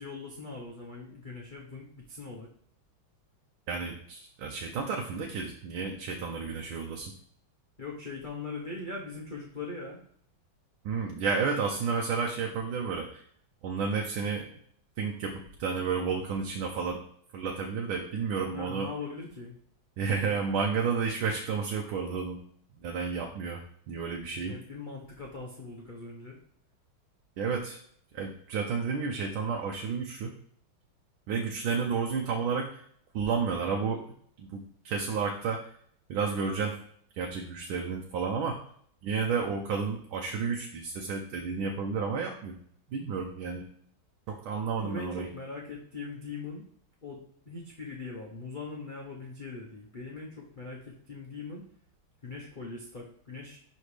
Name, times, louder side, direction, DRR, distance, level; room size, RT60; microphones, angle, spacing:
voice 1, 0.0-2.5 7.8-10.0 18.5-19.6 24.4-26.4 44.8-46.6 47.0-51.6 52.2-53.6, left 3 dB, 40° left, -3 dB, 0.6 m, -41 dB
voice 2, 3.7-7.1 10.8-13.2 13.6-14.5 15.0-17.0 17.3-18.9 20.0-22.4 22.8-24.5 27.4-27.8 28.1-30.3 31.3-32.8 33.1-34.1 34.4-35.8 36.1-36.8 37.1-38.6 39.0-42.5 42.9-43.6 44.3-45.3, right 5 dB, 75° right, 1 dB, 1.5 m, -31 dB
11.0 x 3.9 x 3.3 m, 0.64 s
omnidirectional pair, 2.3 m